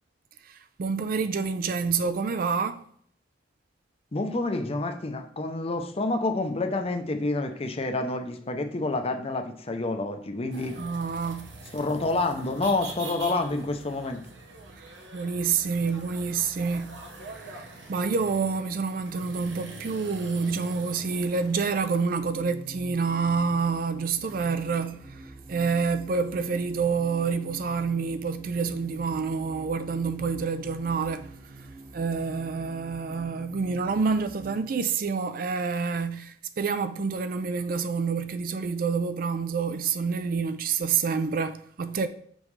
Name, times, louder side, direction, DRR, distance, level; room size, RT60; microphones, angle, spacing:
voice 1, 0.5-2.8 10.8-11.5 15.1-31.3 31.9-42.1, right 5 dB, 50° right, 0.4 m, -28 dB
voice 2, 4.1-10.8 11.7-14.2, left 2 dB, 35° left, 0.6 m, -28 dB
sound 1, 10.5-22.1, right 2 dB, 85° right, 0.9 m, -44 dB
sound 2, 22.1-34.6, right 2 dB, 30° right, 1.2 m, -46 dB
6.0 x 5.3 x 3.2 m
head